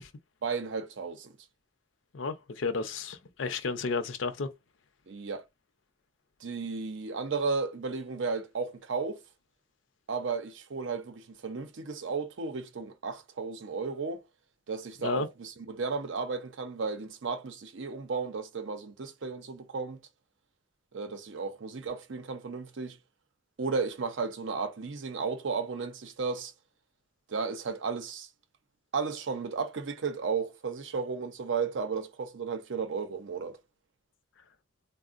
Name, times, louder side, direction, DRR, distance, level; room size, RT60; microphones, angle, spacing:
voice 1, 0.4-1.3 5.1-5.4 6.4-9.2 10.1-14.2 14.7-20.0 20.9-23.0 23.6-26.5 27.3-28.3 28.9-33.6, right 4 dB, 75° right, 0.6 m, -34 dB
voice 2, 2.1-4.5 15.0-15.3, left 4 dB, 90° left, 0.6 m, -32 dB
3.5 x 2.1 x 2.5 m
head